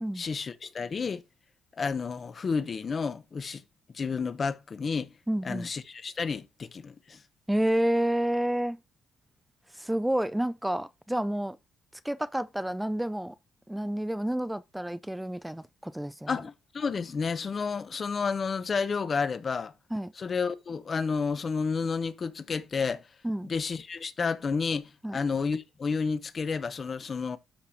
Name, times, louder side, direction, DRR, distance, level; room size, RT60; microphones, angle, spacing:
voice 1, 0.1-1.2 1.8-3.6 3.9-5.1 5.4-7.2 16.3-19.7 20.2-23.0 23.4-27.4, left 5 dB, 40° left, 1.0 m, -31 dB
voice 2, 5.3-5.7 7.5-8.8 9.7-11.6 12.0-13.3 13.7-16.3 19.9-20.1 23.2-23.5 25.0-25.2, right 1 dB, 5° right, 0.5 m, -29 dB
13.0 x 5.0 x 2.8 m
cardioid pair, 90°, 0 cm